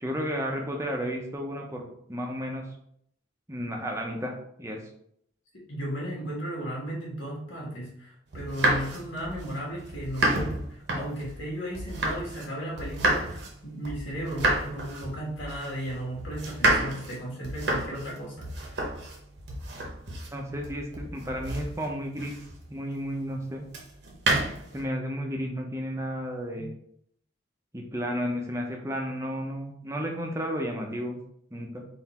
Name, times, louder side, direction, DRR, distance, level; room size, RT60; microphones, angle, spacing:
voice 1, 0.0-2.6 3.5-4.3 4.6-4.8 20.3-22.3 22.7-23.6 24.7-26.7 27.7-31.2 31.5-31.8, equal, 15° right, 1 dB, 0.6 m, -32 dB
voice 2, 5.5-18.8 26.5-26.7, equal, 75° left, -3 dB, 1.7 m, -35 dB
sound 1, 8.3-12.5 12.8-22.7 23.7-24.8, right 2 dB, 60° right, 0.9 m, -30 dB
4.0 x 2.6 x 4.1 m, 0.69 s
head